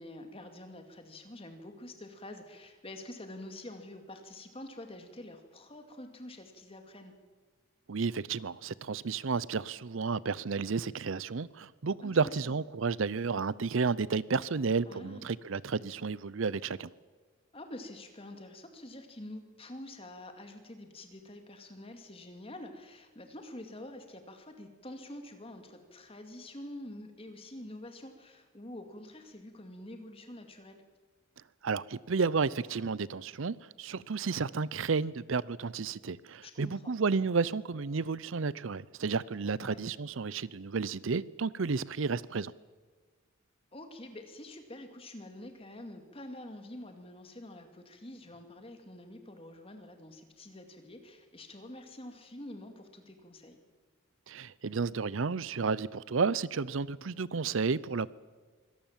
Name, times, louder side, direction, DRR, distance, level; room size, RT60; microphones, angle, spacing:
voice 1, 0.0-7.1 12.0-12.3 14.9-15.3 17.5-30.8 36.4-36.9 39.6-39.9 43.7-53.6, left 1 dB, 25° left, 2.3 m, -47 dB
voice 2, 7.9-16.9 31.6-42.5 54.3-58.1, right 4 dB, 65° right, 0.6 m, -32 dB
24.5 x 17.5 x 7.4 m
head